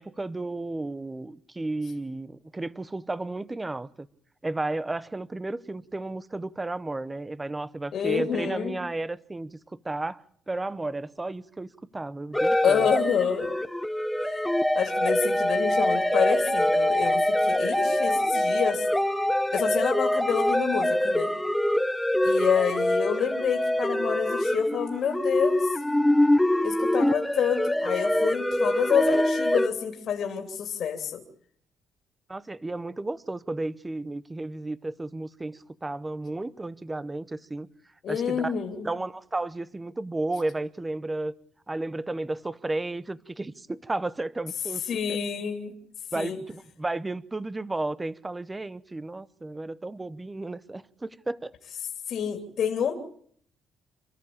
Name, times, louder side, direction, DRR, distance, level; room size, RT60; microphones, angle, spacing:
voice 1, 0.0-4.1 4.4-9.6 9.8-12.8 32.3-37.7 38.1-38.6 38.8-41.3 41.7-45.2 46.1-51.5, right 2 dB, 15° right, 0.9 m, -33 dB
voice 2, 7.9-8.8 12.6-13.6 14.2-14.4 14.7-18.9 19.5-21.4 22.2-25.8 26.6-31.2 38.0-38.9 44.8-45.7 46.1-46.4 52.1-52.9, left 7 dB, 60° left, 2.9 m, -28 dB
sound 1, 12.3-29.7, left 1 dB, 5° left, 1.1 m, -24 dB
28.0 x 13.5 x 8.7 m
cardioid pair, 105°, 0 cm